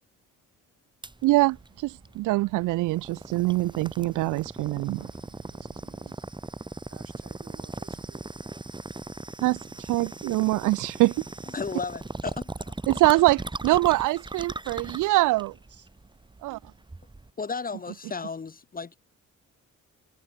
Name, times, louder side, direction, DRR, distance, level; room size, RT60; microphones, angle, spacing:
sound 1, 1.0-17.3, right 2 dB, 15° right, 2.6 m, -39 dB
voice 1, 1.2-5.1 9.4-11.2 12.9-15.5 16.4-16.6, right 19 dB, 85° right, 0.6 m, -24 dB
voice 2, 4.9-6.2 6.9-8.3 15.3-15.9, right 8 dB, 50° right, 4.2 m, -56 dB
voice 3, 11.5-12.7 17.4-19.0, left 5 dB, 30° left, 1.4 m, -34 dB
cardioid pair, 90°, 30 cm